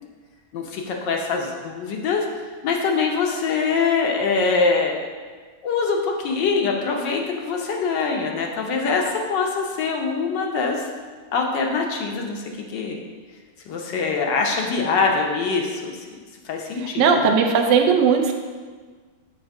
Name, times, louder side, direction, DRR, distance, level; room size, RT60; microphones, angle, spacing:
voice 1, 0.5-2.2 2.6-4.9 5.6-10.8 11.3-13.0 13.7-16.0 16.4-17.4, left 4 dB, 85° left, 1 dB, 1.5 m, -23 dB
voice 2, 17.0-18.3, right 6 dB, 80° right, 4 dB, 1.3 m, -17 dB
7.6 x 2.7 x 5.9 m, 1.5 s
omnidirectional pair, 1.9 m